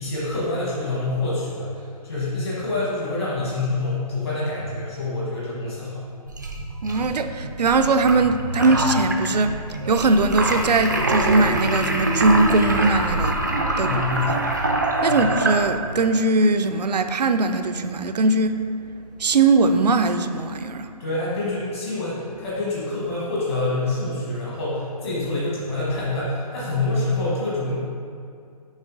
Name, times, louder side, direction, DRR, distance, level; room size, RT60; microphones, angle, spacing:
voice 1, 0.0-6.0 13.8-14.3 15.1-15.2 21.0-27.7, left 2 dB, 40° left, -7 dB, 1.3 m, -26 dB
sound 1, 6.3-16.0, right 1 dB, 30° right, 0.3 m, -25 dB
voice 2, 6.8-9.6 9.9-13.4 13.8-14.0 15.0-18.6 19.2-20.9, right 3 dB, 85° right, 8 dB, 0.5 m, -20 dB
6.4 x 5.2 x 3.7 m, 2.4 s
hypercardioid pair, 175°, 20 cm